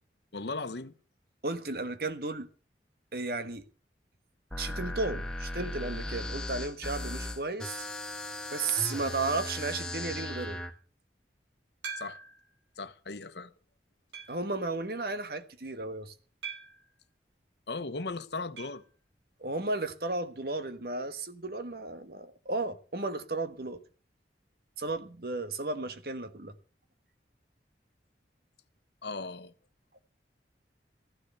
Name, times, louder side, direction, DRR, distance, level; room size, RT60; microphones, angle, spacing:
voice 1, 0.3-0.9 12.0-12.2 12.8-13.5 17.7-18.8 29.0-29.5, left 3 dB, 75° left, 1.1 m, -37 dB
voice 2, 1.4-2.5 3.1-3.6 4.6-7.8 8.5-10.6 14.3-16.1 19.4-23.8 24.8-26.5, right 3 dB, 60° right, 1.4 m, -34 dB
sound 1, 4.5-10.7, left 1 dB, 5° left, 1.7 m, -37 dB
sound 2, 11.8-12.5 13.1-13.2 14.1-14.5 16.4-16.9 18.6-18.9 19.1-19.2 19.5-19.6 21.6-21.7, right 5 dB, 90° right, 3.2 m, -42 dB
14.5 x 12.0 x 6.7 m
head